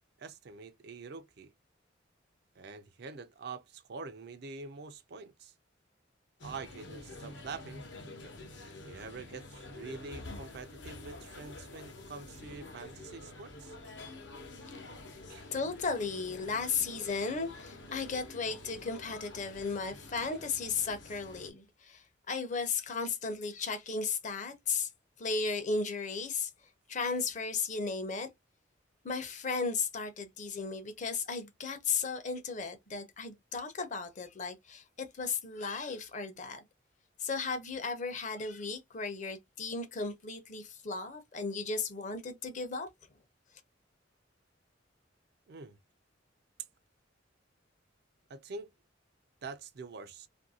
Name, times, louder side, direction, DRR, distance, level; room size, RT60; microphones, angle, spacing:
voice 1, 0.2-1.5 2.6-5.5 6.4-7.8 8.8-13.7 15.3-15.5 45.5-45.8 48.3-48.7 49.4-50.3, right 4 dB, 55° right, 0.4 m, -45 dB
sound 1, 6.4-21.5, left 2 dB, 65° left, 0.8 m, -48 dB
voice 2, 15.5-24.9 25.2-26.5 26.9-28.3 29.0-36.6 37.2-42.9, left 4 dB, 40° left, 0.6 m, -35 dB
2.6 x 2.5 x 2.7 m
head